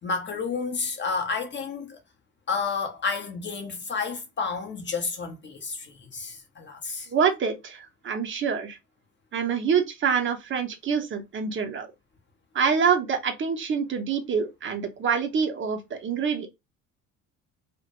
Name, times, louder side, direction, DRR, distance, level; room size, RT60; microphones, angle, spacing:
voice 1, 0.0-2.0 2.5-7.1, left 5 dB, 25° left, 0.6 m, -31 dB
voice 2, 7.1-8.8 9.3-11.9 12.5-16.5, right 6 dB, 25° right, 0.6 m, -26 dB
2.1 x 2.1 x 2.9 m
figure-of-eight pair, 55°, 45 cm